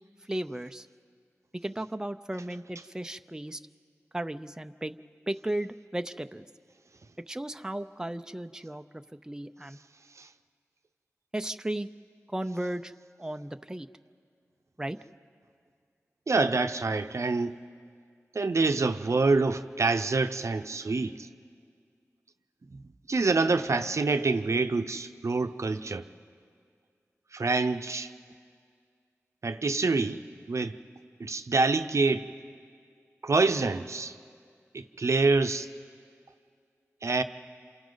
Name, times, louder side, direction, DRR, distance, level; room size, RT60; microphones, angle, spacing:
voice 1, 0.3-0.9 1.6-3.6 4.1-5.0 5.3-6.5 7.3-9.8 11.3-11.9 12.3-12.9 13.2-13.9 14.8-15.0, right 1 dB, 10° right, 8 dB, 0.6 m, -35 dB
voice 2, 16.3-17.6 18.3-21.3 22.7-22.8 23.1-26.0 27.3-28.1 29.4-30.2 30.5-30.7 31.2-32.3 33.2-34.1 34.7-35.7 37.0-37.2, right 3 dB, 65° right, 9 dB, 0.7 m, -26 dB
28.0 x 27.5 x 4.0 m, 2.1 s
cardioid pair, 45°, 5 cm